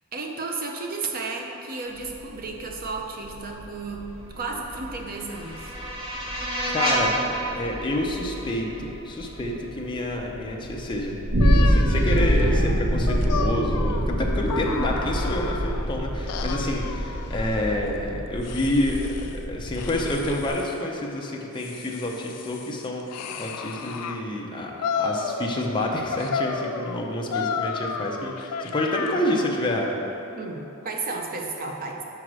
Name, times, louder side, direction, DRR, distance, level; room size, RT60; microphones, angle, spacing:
voice 1, 0.1-4.1 4.4-5.8 30.3-32.0, right 3 dB, 40° right, 2 dB, 0.6 m, -33 dB
sound 1, 2.0-20.5, equal, 60° right, 1.0 m, -27 dB
sound 2, 4.5-9.6, right 1 dB, 25° right, 1.0 m, -30 dB
voice 2, 6.7-7.2 7.5-11.2 11.6-19.1 19.5-24.7 25.0-29.9, left 1 dB, 20° left, -1 dB, 0.5 m, -28 dB
sound 3, 11.4-15.9 16.3-17.8 18.4-19.4 19.7-20.8 21.3-24.2 24.8-25.8 26.1-29.6, left 5 dB, 90° left, 0.4 m, -32 dB
5.0 x 4.7 x 6.1 m, 3.0 s
head